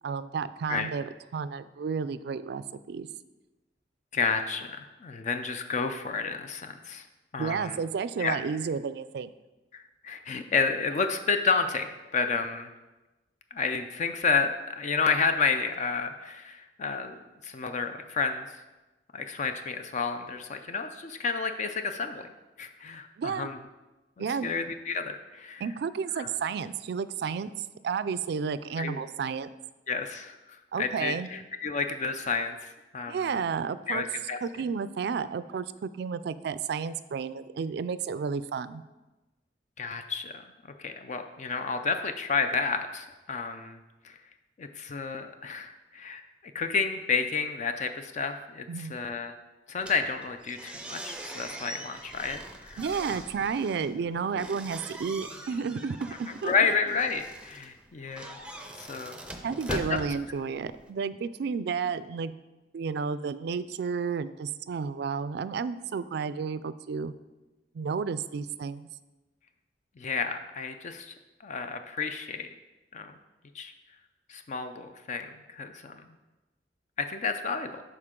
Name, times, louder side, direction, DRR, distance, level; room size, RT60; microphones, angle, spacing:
voice 1, 0.0-3.1 7.4-9.3 23.2-23.5 24.2-24.5 25.6-27.5 27.8-29.5 30.7-31.3 33.1-34.0 34.4-38.8 48.7-48.9 52.8-56.7 59.4-62.3 62.7-67.1 67.7-68.9, right 5 dB, 65° right, 15 dB, 0.3 m, -32 dB
voice 2, 4.1-7.0 7.3-7.8 8.2-8.4 9.7-12.7 13.5-18.5 19.1-22.3 22.6-23.6 24.2-25.6 26.2-26.3 28.8-29.0 29.9-30.4 30.8-33.4 33.9-34.4 39.8-40.3 40.8-43.8 44.0-44.2 44.6-46.2 46.5-49.3 49.7-52.8 53.1-53.2 56.4-58.4 58.8-59.2 59.7-60.0 70.0-71.1 71.4-72.5 72.9-73.1 73.5-73.7 74.3-76.0 77.0-77.8, left 5 dB, 45° left, 7 dB, 0.4 m, -31 dB
sound 1, 49.8-60.9, right 1 dB, 5° right, 0.6 m, -42 dB
11.0 x 4.3 x 3.7 m, 1.1 s
head